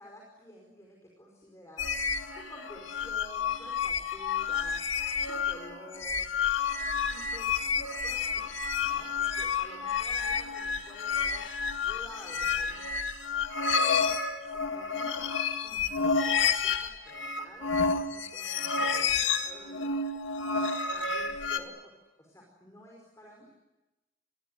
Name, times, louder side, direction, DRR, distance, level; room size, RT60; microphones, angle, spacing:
voice 1, 0.0-2.0 2.3-4.8 5.1-6.3 6.9-13.1 13.8-14.1 14.4-15.3 15.6-19.9 20.9-23.5, equal, 15° left, 0 dB, 5.1 m, -51 dB
sound 1, 1.8-21.6, left 5 dB, 80° left, 2.1 m, -30 dB
29.0 x 22.0 x 8.1 m, 1.0 s
head